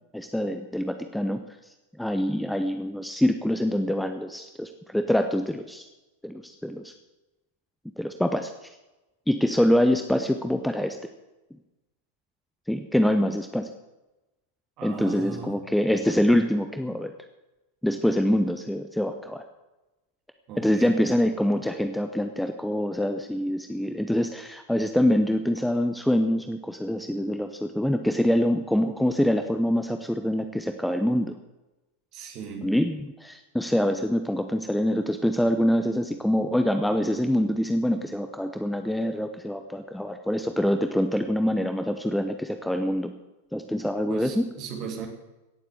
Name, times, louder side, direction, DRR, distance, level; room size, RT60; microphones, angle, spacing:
voice 1, 0.1-1.4 2.0-5.9 6.2-6.9 8.0-8.5 9.3-11.0 12.7-13.7 14.8-17.1 17.8-19.4 20.6-31.3 32.6-43.1 43.5-44.5, equal, ahead, 7 dB, 0.9 m, -25 dB
voice 2, 14.8-15.6 20.5-21.1 32.1-32.8 44.1-45.1, right 6 dB, 40° right, 3 dB, 3.1 m, -37 dB
17.0 x 7.8 x 7.8 m, 1.0 s
figure-of-eight pair, 90°, 0 cm